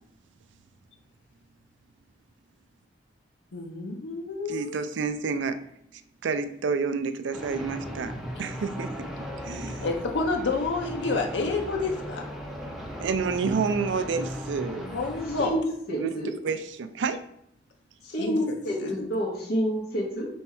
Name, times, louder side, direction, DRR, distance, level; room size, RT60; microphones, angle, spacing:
voice 1, 3.5-4.8 9.8-12.2 14.8-15.6 18.2-18.4 18.8-19.1, left 3 dB, 75° left, 2 dB, 0.6 m, -29 dB
voice 2, 4.5-5.6 6.2-8.1 8.4-9.1 9.4-9.9 13.0-14.9 15.9-17.2, right 5 dB, 85° right, 11 dB, 0.4 m, -29 dB
sound 1, 7.3-15.5, equal, ahead, 0.6 m, -37 dB
voice 3, 15.9-16.3 18.0-20.3, equal, 55° left, -2 dB, 0.9 m, -28 dB
5.3 x 2.3 x 4.2 m, 0.74 s
head